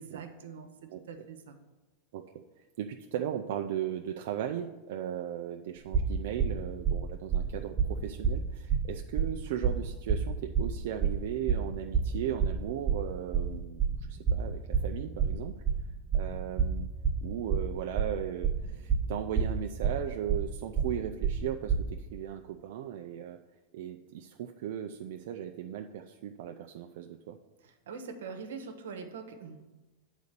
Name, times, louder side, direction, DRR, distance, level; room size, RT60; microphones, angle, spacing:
voice 1, 0.0-1.6 27.6-29.6, right 5 dB, 90° right, 5 dB, 1.0 m, -43 dB
voice 2, 2.6-15.6 16.1-16.9 17.2-23.4 23.7-27.4, right 10 dB, 70° right, 3 dB, 0.5 m, -37 dB
sound 1, 5.9-21.8, right 6 dB, 20° right, 1.3 m, -29 dB
8.2 x 4.1 x 6.6 m, 1.1 s
supercardioid pair, 130°, 0 cm